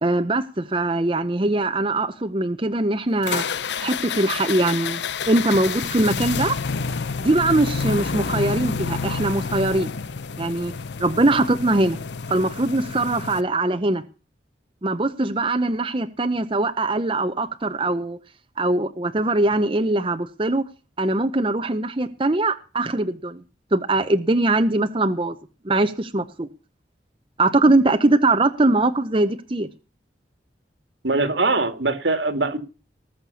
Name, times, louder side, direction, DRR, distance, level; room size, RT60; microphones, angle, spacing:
voice 1, 0.0-3.4 3.8-5.0 5.3-6.6 7.2-9.9 10.4-10.7 11.0-12.0 12.3-14.0 14.8-18.2 18.6-20.6 21.0-23.4 23.7-25.4 25.6-26.5 27.4-29.7, right 2 dB, 30° right, 0.8 m, -21 dB
sound 1, 3.2-13.4, left 5 dB, 75° left, 0.7 m, -29 dB
voice 2, 31.0-32.6, right 3 dB, 85° right, 2.1 m, -22 dB
19.5 x 6.7 x 7.0 m
head